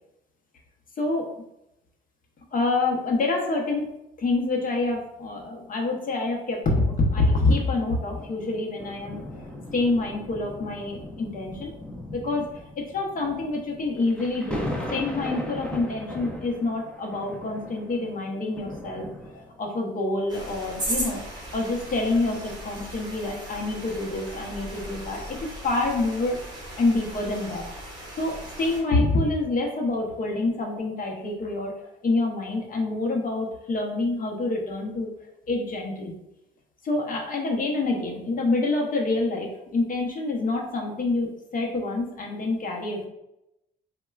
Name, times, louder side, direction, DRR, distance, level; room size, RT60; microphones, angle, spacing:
voice 1, 2.5-3.9 4.2-11.7 12.1-21.2 21.5-25.4 25.6-27.6 28.2-35.1 35.5-36.2 36.8-43.1, left 2 dB, 45° left, 0 dB, 0.8 m, -27 dB
sound 1, 6.9-19.7 20.4-20.6, equal, 5° left, 0.5 m, -38 dB
sound 2, 20.3-28.8, right 1 dB, 20° right, 1.2 m, -37 dB
4.1 x 2.2 x 2.3 m, 0.86 s
cardioid pair, 105°, 20 cm